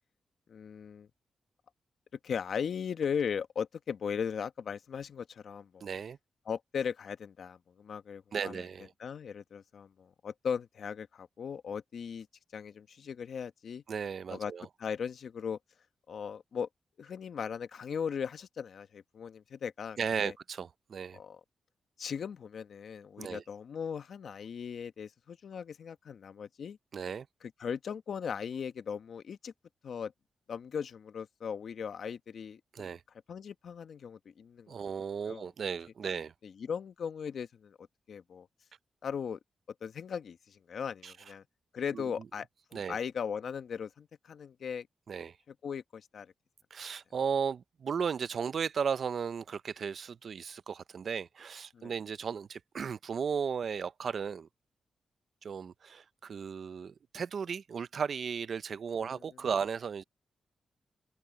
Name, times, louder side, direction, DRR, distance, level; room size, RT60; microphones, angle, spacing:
voice 1, 0.5-1.1 2.2-5.9 6.5-8.6 9.0-12.3 12.5-13.8 14.3-14.5 14.8-15.6 16.1-16.7 17.0-20.3 21.1-21.4 22.0-26.8 27.6-29.5 29.8-30.1 30.5-32.9 33.3-34.8 35.2-35.5 36.4-37.8 38.1-38.5 39.0-39.4 39.8-41.4 41.7-42.5 42.7-44.9 45.6-46.3 51.7-51.9, left 7 dB, 70° left, 1.0 m, -38 dB
voice 2, 5.8-6.2 8.3-8.9 13.9-14.7 20.0-21.2 23.2-23.4 26.9-27.3 32.7-33.0 34.7-36.3 41.0-41.1 41.9-42.0 42.7-43.0 45.1-45.4 46.7-54.5 55.4-60.0, right 6 dB, 60° right, 0.5 m, -35 dB
open air
cardioid pair, 100°, 0 cm